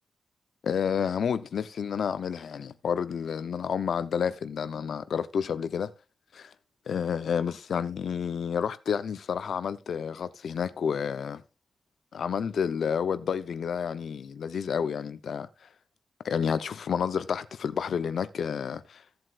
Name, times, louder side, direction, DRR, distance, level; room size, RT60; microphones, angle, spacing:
voice 1, 0.6-5.9 6.3-6.5 6.9-11.4 12.1-15.7 16.2-19.0, left 7 dB, 70° left, 0.8 m, -30 dB
16.0 x 7.8 x 2.5 m
wide cardioid pair, 135°, 0 cm